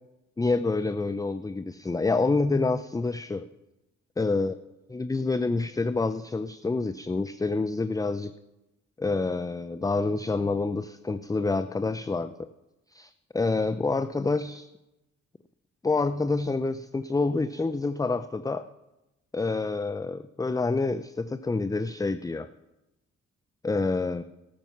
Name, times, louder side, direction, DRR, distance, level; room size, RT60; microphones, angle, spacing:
voice 1, 0.4-3.5 4.2-4.6 4.9-8.3 9.0-12.5 12.9-14.7 15.8-18.7 19.3-22.5 23.6-24.2, left 3 dB, 10° left, 12 dB, 0.5 m, -27 dB
12.5 x 9.2 x 5.8 m, 0.99 s
supercardioid pair, 60°, 30 cm